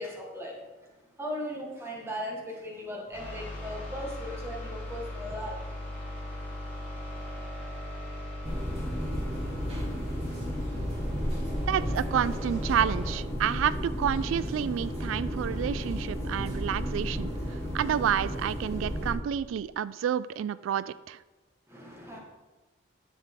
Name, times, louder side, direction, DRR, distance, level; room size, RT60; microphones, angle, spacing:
voice 1, 0.0-6.5 21.7-22.2, equal, 15° right, -2 dB, 1.8 m, -38 dB
sound 1, 3.1-13.1, left 1 dB, 10° left, 3.2 m, -38 dB
sound 2, 8.4-19.1, equal, 35° right, 3.0 m, -33 dB
voice 2, 11.7-17.3 17.7-21.2, right 9 dB, 90° right, 18 dB, 0.3 m, -29 dB
9.9 x 7.3 x 3.8 m, 1.2 s
head